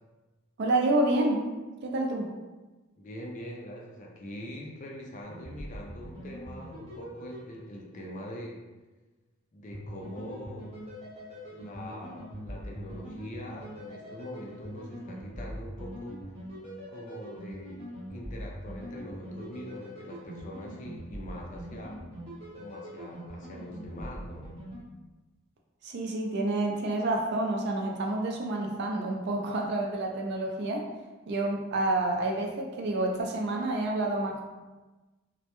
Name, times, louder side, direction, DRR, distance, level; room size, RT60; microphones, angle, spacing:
voice 1, 0.6-1.4 1.8-2.3 25.8-30.8 31.3-34.4, right 2 dB, 50° right, 0 dB, 0.4 m, -28 dB
voice 2, 3.0-8.6 9.5-10.8 11.5-16.2 16.9-22.0 22.6-24.5, equal, 35° left, -1 dB, 0.3 m, -43 dB
sound 1, 5.2-8.2 9.7-24.8, equal, 25° right, 0.8 m, -43 dB
2.1 x 2.0 x 2.9 m, 1.2 s
head